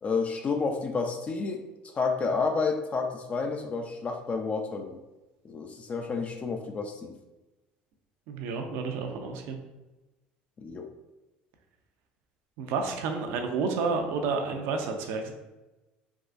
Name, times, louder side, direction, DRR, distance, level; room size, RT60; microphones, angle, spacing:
voice 1, 0.0-5.0 5.4-7.1 10.6-10.9, left 4 dB, 35° left, 4 dB, 0.4 m, -30 dB
voice 2, 8.3-9.6 12.6-15.3, right 4 dB, 70° right, 4 dB, 0.5 m, -30 dB
3.5 x 2.4 x 2.5 m, 1.1 s
supercardioid pair, 85°, 4 cm